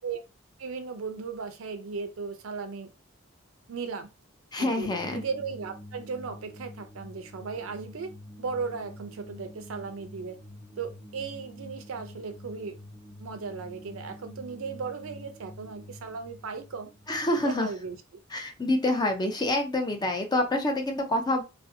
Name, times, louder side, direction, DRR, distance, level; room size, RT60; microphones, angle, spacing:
voice 1, 0.6-2.9 3.7-4.1 4.6-8.1 8.4-10.4 10.8-12.8 13.2-16.9 17.2-18.0, right 5 dB, 85° right, 0.5 m, -36 dB
voice 2, 4.5-5.2 17.1-17.7 18.3-21.4, left 1 dB, 20° left, 0.4 m, -27 dB
sound 1, 4.8-17.9, left 1 dB, 5° left, 0.8 m, -47 dB
2.6 x 2.0 x 2.6 m
head